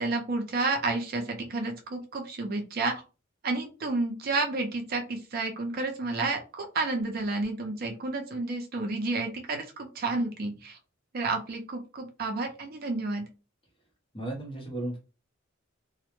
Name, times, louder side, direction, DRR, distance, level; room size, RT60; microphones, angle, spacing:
voice 1, 0.0-2.9 3.4-10.8 11.1-13.2, right 3 dB, 50° right, 4 dB, 0.4 m, -30 dB
voice 2, 14.1-15.0, right 1 dB, 25° left, 0 dB, 0.8 m, -34 dB
2.1 x 2.0 x 2.9 m, 0.32 s
head